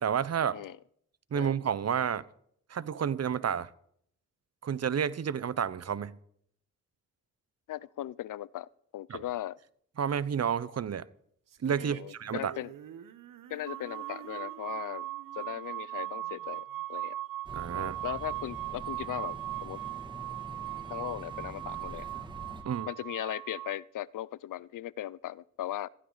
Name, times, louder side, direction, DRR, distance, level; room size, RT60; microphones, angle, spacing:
voice 1, 0.0-0.6 1.3-2.2 2.7-3.7 4.6-6.2 9.1-9.2 10.0-11.1 11.6-12.5 17.5-18.0 22.6-22.9, right 8 dB, 50° right, 0.8 m, -30 dB
voice 2, 7.7-9.6 11.8-12.7 13.5-15.1 15.4-17.2 17.7-19.8 20.9-22.1 22.9-25.9, left 13 dB, 70° left, 0.5 m, -38 dB
sound 1, 11.5-16.8, right 9 dB, 70° right, 1.1 m, -51 dB
sound 2, 13.7-23.8, right 15 dB, 90° right, 0.7 m, -39 dB
sound 3, 17.4-22.6, right 1 dB, 15° right, 2.2 m, -46 dB
16.0 x 15.0 x 4.0 m
cardioid pair, 60°, 33 cm